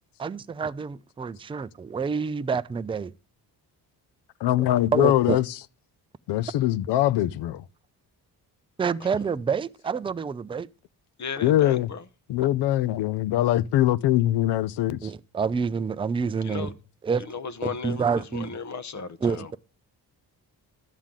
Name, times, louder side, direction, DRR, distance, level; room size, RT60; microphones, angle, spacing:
voice 1, 0.2-3.1 4.9-5.4 8.8-10.7 15.0-16.7 17.0-17.3 17.6-18.5 19.2-19.6, right 5 dB, 15° right, 0.4 m, -28 dB
voice 2, 4.4-5.4 6.3-7.6 11.4-11.9 12.3-15.0, left 13 dB, 85° left, 0.6 m, -22 dB
voice 3, 11.2-12.0 16.4-16.7 17.2-18.0 18.3-19.6, left 5 dB, 45° left, 0.8 m, -35 dB
11.5 x 7.3 x 3.7 m
cardioid pair, 95°, 40 cm